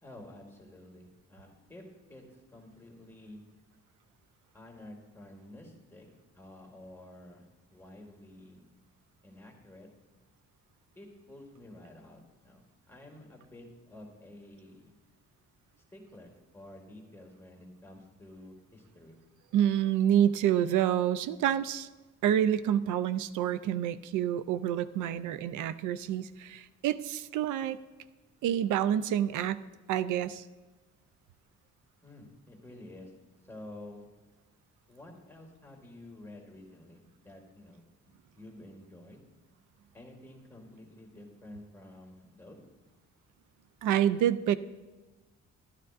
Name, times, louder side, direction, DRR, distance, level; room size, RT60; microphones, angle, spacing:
voice 1, 0.0-1.8 2.1-2.2 2.5-3.4 4.5-6.1 6.3-8.6 9.2-9.9 11.0-14.8 15.9-19.2 32.0-33.1 33.4-34.1 34.9-37.8 38.4-39.2 39.9-42.6, left 1 dB, 10° left, 0 dB, 1.9 m, -50 dB
voice 2, 19.5-21.9 22.2-27.8 28.4-30.4 43.8-44.6, right 10 dB, 80° right, 14 dB, 0.5 m, -28 dB
13.0 x 11.5 x 2.5 m, 1.2 s
cardioid pair, 90°, 30 cm